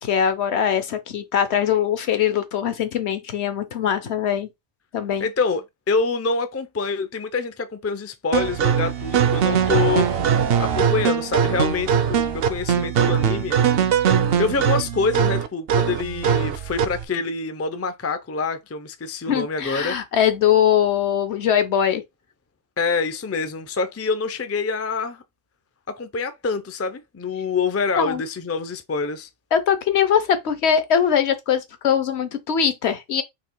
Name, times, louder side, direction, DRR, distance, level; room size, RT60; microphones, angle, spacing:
voice 1, 0.0-4.5 4.9-5.3 19.3-22.0 28.0-28.2 29.5-33.2, left 8 dB, 70° left, 1.1 m, -21 dB
voice 2, 5.2-10.1 10.6-13.6 14.4-20.0 22.8-25.2 25.9-29.3, left 4 dB, 20° left, 0.3 m, -26 dB
sound 1, 8.3-17.0, right 8 dB, 60° right, 0.8 m, -21 dB
4.1 x 2.9 x 4.5 m
omnidirectional pair, 1.2 m